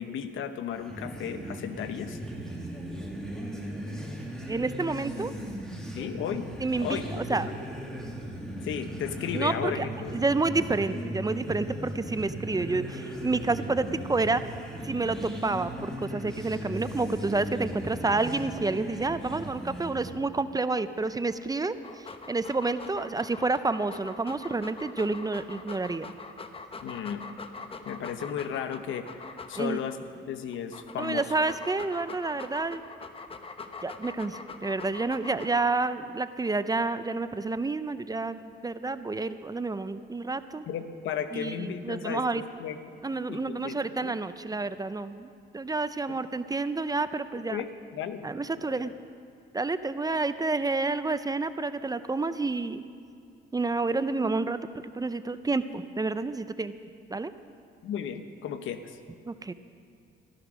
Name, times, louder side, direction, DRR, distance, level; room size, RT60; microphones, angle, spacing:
voice 1, 0.0-2.2 5.9-6.5 6.8-7.5 8.6-10.3 26.8-27.2 27.9-30.0 30.3-31.3 40.7-42.9 43.3-44.2 46.1-46.2 47.5-48.2 48.7-48.9 57.8-59.0, left 8 dB, 80° left, 9 dB, 1.0 m, -35 dB
sound 1, 0.7-20.2, right 1 dB, 5° left, 2.8 m, -37 dB
voice 2, 4.5-5.3 6.6-7.5 9.3-9.9 10.1-14.4 14.8-26.1 29.6-29.8 31.0-32.8 33.8-40.6 41.3-42.4 43.0-45.3 45.5-47.6 48.2-48.9 49.5-52.8 53.5-54.6 54.9-56.7 57.1-57.3 59.3-59.5, right 3 dB, 20° right, 12 dB, 0.6 m, -29 dB
Dog, 21.7-30.0 30.5-35.9, left 4 dB, 30° left, 1.0 m, -43 dB
14.5 x 13.0 x 6.3 m, 2.4 s
cardioid pair, 90°, 20 cm